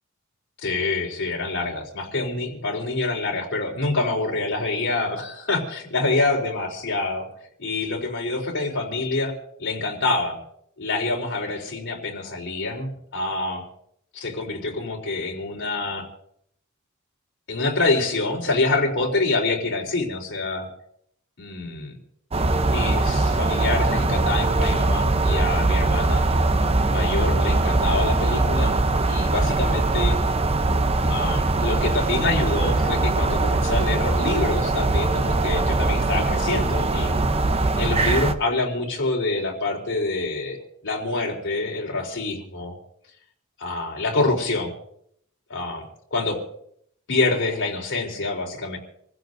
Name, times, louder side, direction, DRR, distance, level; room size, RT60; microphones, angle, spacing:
voice 1, 0.6-7.3 7.6-9.3 9.6-10.4 10.8-13.6 14.1-16.0 17.5-20.7 21.4-22.0 22.6-26.3 26.9-28.8 29.1-30.2 31.1-37.2 37.8-40.6 40.8-42.8 43.6-44.7 45.5-45.8 46.1-46.4 47.1-48.8, left 3 dB, 60° left, 0 dB, 3.9 m, -26 dB
sound 1, 22.3-38.3, right 2 dB, 30° right, 0.8 m, -21 dB
27.5 x 15.5 x 2.7 m, 0.70 s
head